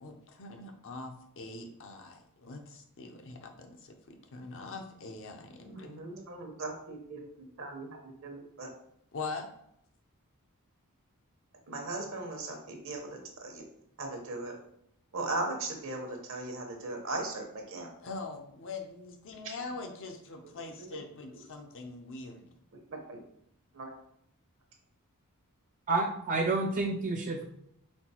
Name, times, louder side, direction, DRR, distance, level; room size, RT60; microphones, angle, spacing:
voice 1, 0.0-5.9 9.1-9.5 18.0-22.5, left 3 dB, 60° left, 4 dB, 0.6 m, -43 dB
voice 2, 5.6-7.2 7.6-8.7 11.7-13.6 14.0-14.5 15.1-17.9 20.4-20.5 20.9-21.0 22.9-23.2 23.7-23.9, right 2 dB, 60° right, 2 dB, 1.0 m, -38 dB
voice 3, 25.9-27.4, right 3 dB, 35° right, 2 dB, 0.4 m, -29 dB
4.3 x 4.0 x 2.9 m, 0.75 s
head